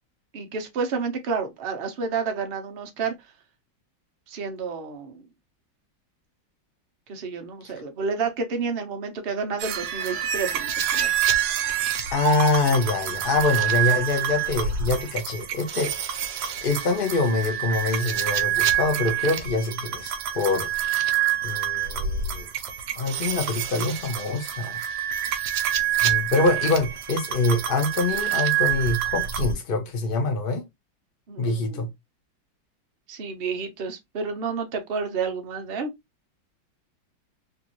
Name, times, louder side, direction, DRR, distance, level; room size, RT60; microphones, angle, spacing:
voice 1, 0.3-3.1 4.3-5.3 7.1-11.1 31.3-31.9 33.1-35.9, right 5 dB, 50° right, 0.7 m, -30 dB
sound 1, 9.6-29.5, right 10 dB, 75° right, 1.3 m, -27 dB
voice 2, 12.1-15.9 16.6-20.7 21.4-22.5 23.0-24.8 26.0-30.6 31.4-31.9, left 3 dB, 65° left, 0.5 m, -25 dB
3.5 x 2.5 x 2.9 m
omnidirectional pair, 2.1 m